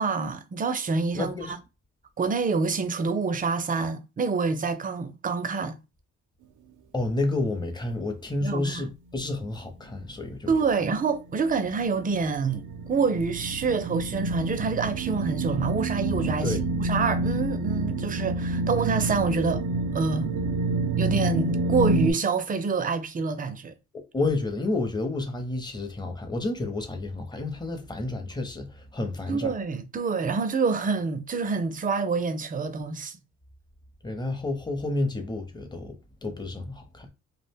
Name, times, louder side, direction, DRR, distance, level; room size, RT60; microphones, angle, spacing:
voice 1, 0.0-1.6 2.2-5.8 8.4-8.9 10.5-12.6 12.9-19.6 19.9-20.3 21.0-23.7 29.3-33.2, right 4 dB, 30° right, 0.4 m, -27 dB
voice 2, 1.1-1.5 6.9-10.5 16.4-16.6 24.1-29.5 34.0-37.1, left 2 dB, 15° left, 0.7 m, -30 dB
sound 1, 10.7-22.1, right 2 dB, 75° right, 0.5 m, -28 dB
2.3 x 2.1 x 3.4 m
cardioid pair, 90°, 30 cm